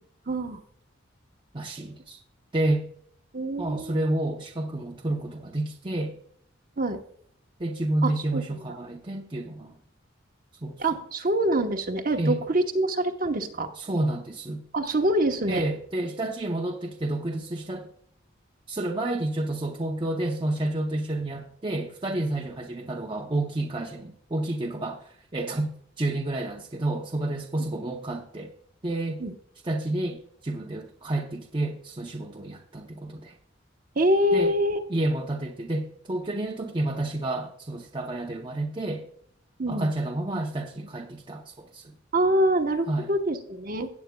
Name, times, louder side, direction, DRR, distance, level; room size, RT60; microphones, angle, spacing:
voice 1, 0.3-0.6 3.3-4.0 6.8-7.0 8.0-8.4 8.7-8.8 10.8-13.7 14.7-15.6 29.2-29.3 34.0-34.8 39.6-39.9 42.1-43.9, right 1 dB, 45° right, 5 dB, 0.9 m, -25 dB
voice 2, 1.5-2.2 2.5-2.9 3.6-6.1 7.6-9.8 10.6-10.8 12.2-12.4 13.8-14.6 15.5-17.9 18.7-28.5 28.8-29.2 29.6-33.4 34.3-34.5 34.9-39.1 39.7-41.9 42.8-43.1, right 1 dB, 25° right, 1 dB, 0.6 m, -30 dB
16.5 x 8.0 x 2.2 m, 0.64 s
head